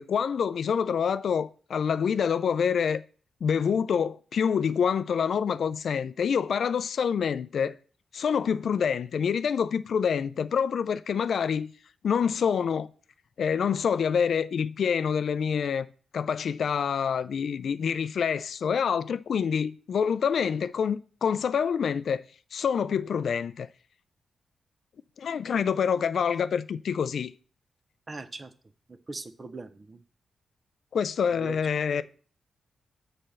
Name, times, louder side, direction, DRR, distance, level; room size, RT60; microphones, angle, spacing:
voice 1, 0.0-3.0 3.4-7.7 8.1-11.7 12.0-12.9 13.4-15.9 16.1-22.2 22.5-23.7 25.2-27.3 30.9-32.0, left 7 dB, 65° left, 0.4 m, -26 dB
voice 2, 28.1-28.5 28.9-30.0 31.3-31.6, right 3 dB, 25° right, 0.6 m, -40 dB
6.7 x 4.3 x 6.5 m
wide cardioid pair, 120°, 0 cm